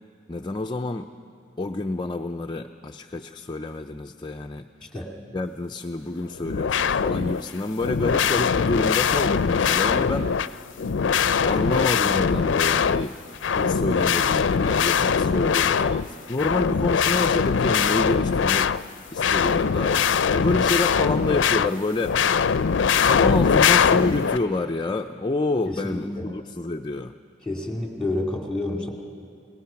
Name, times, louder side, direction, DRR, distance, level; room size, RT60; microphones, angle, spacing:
voice 1, 0.3-1.1 1.6-4.6 5.3-10.5 11.4-13.1 13.5-18.7 19.1-20.0 20.3-22.3 22.9-27.1, left 2 dB, 25° left, 4 dB, 0.5 m, -28 dB
sound 1, 6.4-7.4 7.8-10.5 10.8-13.1 13.4-18.8 19.1-21.7 22.0-24.4, left 6 dB, 80° left, 0.5 m, -21 dB
voice 2, 25.7-26.3 27.4-28.9, left 2 dB, 5° left, 1 dB, 2.4 m, -29 dB
29.5 x 19.0 x 5.8 m, 2.4 s
head